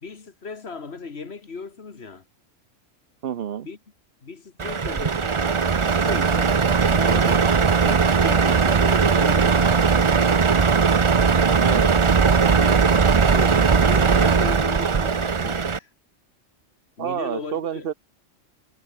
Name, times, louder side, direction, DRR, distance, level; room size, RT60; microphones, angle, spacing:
voice 1, 0.0-2.3 3.6-3.8 4.2-6.6 6.9-7.5 7.8-10.5 12.5-15.9 17.0-17.9, left 4 dB, 55° left, 2.0 m, -36 dB
voice 2, 3.2-3.7 11.6-11.9 12.3-12.6 17.0-17.9, right 9 dB, 55° right, 0.9 m, -28 dB
Truck, 4.6-15.8, right 5 dB, 30° right, 0.6 m, -19 dB
omnidirectional pair, 1.3 m